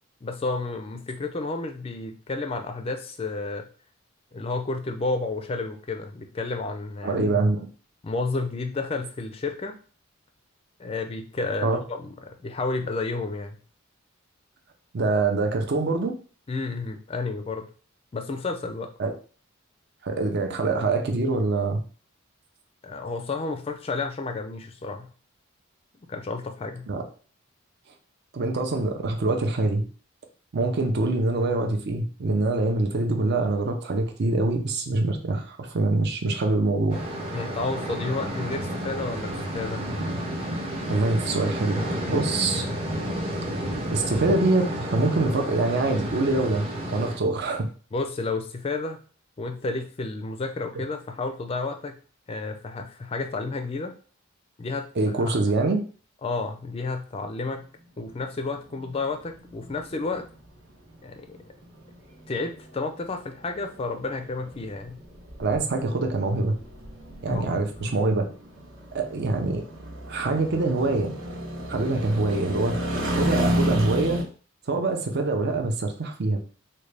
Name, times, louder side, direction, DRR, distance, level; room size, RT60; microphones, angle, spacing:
voice 1, 0.2-3.7 4.3-7.2 8.0-9.8 10.8-13.6 16.5-17.7 18.1-18.9 22.8-25.1 26.1-26.9 37.3-39.9 47.9-49.0 49.4-51.9 52.3-53.9 54.6-54.9 55.2-55.4 56.2-57.7 58.0-60.2 61.0-61.4 62.3-65.0 67.3-67.9, left 3 dB, 25° left, 6 dB, 0.4 m, -31 dB
voice 2, 7.0-7.7 11.6-11.8 14.9-16.1 19.0-19.1 20.0-21.8 26.9-27.0 28.3-29.8 30.5-37.0 40.9-42.6 43.9-47.7 55.0-55.8 65.4-66.5 67.2-68.2 68.9-69.6 70.1-71.1 71.7-72.8 73.1-74.2 74.7-76.4, right 2 dB, 50° right, 4 dB, 0.5 m, -24 dB
sound 1, 36.9-47.2, equal, 30° right, 0.7 m, -31 dB
sound 2, 58.1-74.2, equal, 80° right, 1.0 m, -32 dB
3.8 x 2.2 x 3.2 m, 0.40 s
head